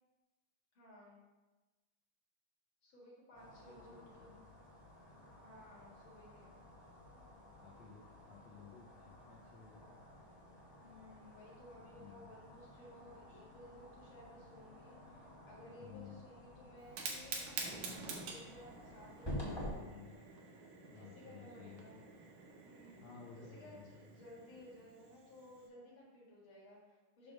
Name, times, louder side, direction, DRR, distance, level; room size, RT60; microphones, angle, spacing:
voice 1, 0.7-1.2 2.8-4.5 5.4-6.6 10.8-20.7 20.9-22.0 22.6-23.1 23.3-27.3, left 1 dB, 45° left, -4 dB, 1.9 m, -58 dB
voice 2, 3.3-4.4 7.6-10.0 11.9-12.3 15.8-16.2 19.6-20.2 20.8-22.0 23.0-24.1, left 7 dB, 85° left, -3 dB, 1.5 m, -56 dB
sound 1, 3.3-19.7, equal, 20° left, 0.6 m, -51 dB
Fire, 16.8-25.7, right 4 dB, 65° right, 2.1 m, -49 dB
6.6 x 3.5 x 6.2 m, 1.2 s
omnidirectional pair, 4.1 m